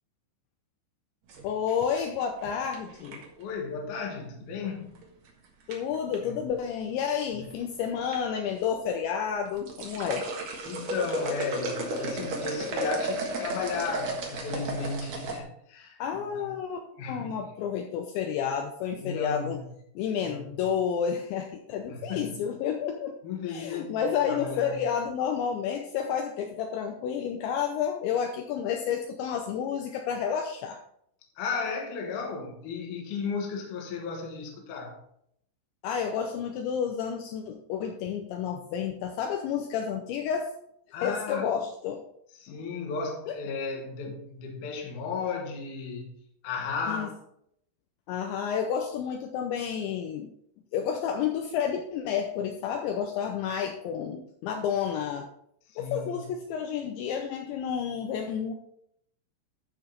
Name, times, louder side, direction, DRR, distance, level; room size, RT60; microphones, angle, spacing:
sound 1, 1.3-3.4 4.9-5.3 5.7-6.1 7.1-7.6 7.9-8.1 8.6-8.7 9.4-15.4, right 2 dB, 80° right, 1.5 m, -34 dB
voice 1, 1.4-3.2 5.7-10.3 16.0-16.8 17.1-19.6 20.0-23.2 23.5-30.8 35.8-40.5 41.0-42.0 42.5-42.6 43.3-43.4 46.9-47.1 48.1-50.3 50.7-55.3 55.8-58.5, left 7 dB, 80° left, 3 dB, 2.8 m, -30 dB
voice 2, 3.4-5.0 6.2-6.3 7.3-7.4 10.6-16.5 17.0-17.4 18.9-19.6 20.3-20.4 21.9-22.4 23.2-24.8 31.4-35.0 40.9-41.5 42.4-46.1 46.4-47.2 55.7-56.2, left 4 dB, 55° left, 1 dB, 2.3 m, -34 dB
13.5 x 4.9 x 4.0 m, 0.72 s
omnidirectional pair, 5.6 m